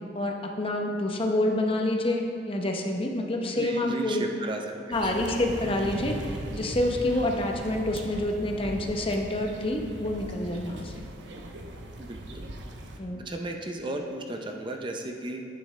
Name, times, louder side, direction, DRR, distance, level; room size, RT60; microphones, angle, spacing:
voice 1, 0.1-4.2 4.9-11.0 13.0-13.3, left 1 dB, 30° left, 2 dB, 0.8 m, -28 dB
voice 2, 3.5-4.6 4.9-5.0 12.0-12.5 13.2-15.5, right 1 dB, 25° right, 3 dB, 0.6 m, -34 dB
sound 1, 4.9-13.0, right 1 dB, 80° right, 0.9 m, -39 dB
10.5 x 9.3 x 3.2 m, 2.6 s
head